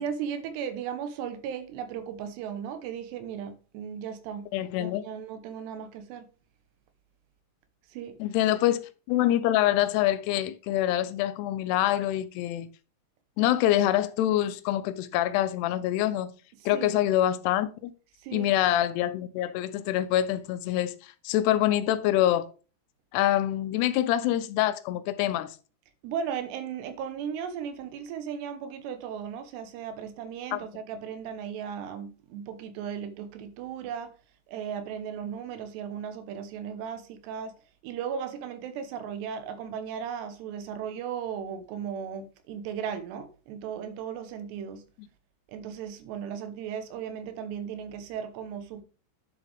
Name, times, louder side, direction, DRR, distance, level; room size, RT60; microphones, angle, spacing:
voice 1, 0.0-4.5 4.8-6.3 7.9-8.2 16.6-17.0 18.2-18.5 26.0-34.1 34.5-44.8 45.5-48.8, right 8 dB, 80° right, 3.1 m, -36 dB
voice 2, 4.5-5.0 8.2-12.7 13.4-16.3 16.7-17.9 18.3-20.9 21.2-22.5 23.1-25.5 30.5-30.6, left 13 dB, 80° left, 2.7 m, -25 dB
10.0 x 7.4 x 3.4 m
omnidirectional pair, 4.8 m